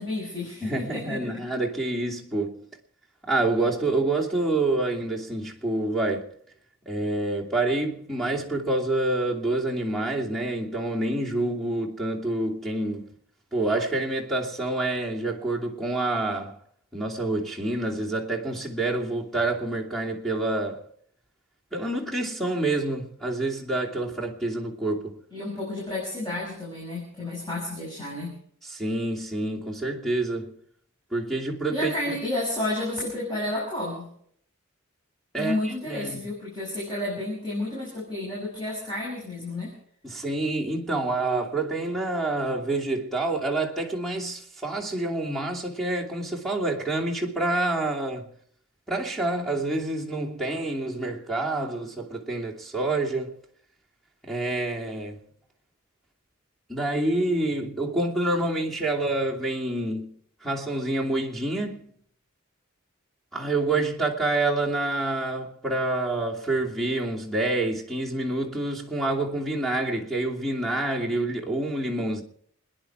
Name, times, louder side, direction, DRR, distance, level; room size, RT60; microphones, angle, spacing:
voice 1, 0.0-1.2 25.3-28.3 31.7-34.1 35.3-39.7, left 2 dB, 20° left, 6.2 m, -31 dB
voice 2, 0.6-2.6 3.3-6.3 6.9-13.1 13.5-16.6 16.9-20.9 21.7-25.2 28.7-30.5 31.1-32.2 35.3-36.2 40.0-48.3 48.9-53.3 54.2-55.2 56.7-60.1 60.4-61.9 63.3-72.2, right 2 dB, ahead, 2.7 m, -27 dB
28.5 x 10.5 x 4.6 m
head